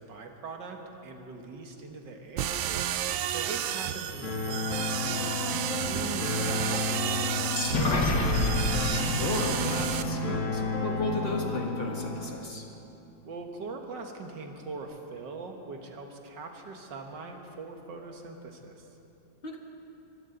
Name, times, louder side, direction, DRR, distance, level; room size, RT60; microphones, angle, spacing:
voice 1, 0.0-2.7 3.3-5.4 5.8-8.4 13.2-18.9, right 3 dB, 65° right, 3 dB, 2.0 m, -42 dB
sound 1, 2.4-10.0, right 10 dB, 90° right, 1.4 m, -32 dB
sound 2, 4.2-12.2, left 3 dB, 90° left, 3.1 m, -32 dB
sound 3, 7.6-11.2, left 2 dB, 65° left, 2.1 m, -29 dB
voice 2, 9.2-12.6 19.4-19.6, left 1 dB, 30° left, 1 dB, 1.6 m, -34 dB
24.0 x 16.0 x 3.9 m, 2.9 s
omnidirectional pair, 2.1 m